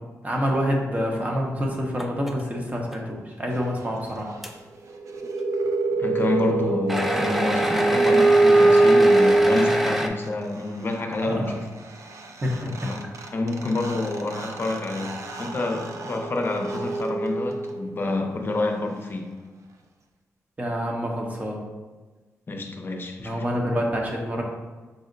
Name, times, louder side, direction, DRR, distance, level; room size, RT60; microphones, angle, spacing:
voice 1, 0.2-4.3 11.3-11.5 12.4-12.7 20.6-21.6 23.2-24.4, equal, 25° right, 0 dB, 0.8 m, -27 dB
sound 1, 2.0-2.4 2.8-3.0 3.6-3.7 4.4-4.5 6.9-10.1, equal, 5° right, 0.4 m, -26 dB
sound 2, 4.9-10.3 12.2-12.3 12.4-17.9, right 2 dB, 60° right, 0.5 m, -23 dB
voice 2, 6.0-11.7 12.8-13.0 13.3-19.4 22.5-23.6, left 2 dB, 40° left, 3 dB, 0.6 m, -28 dB
5.4 x 2.1 x 3.8 m, 1.3 s
cardioid pair, 85°, 6 cm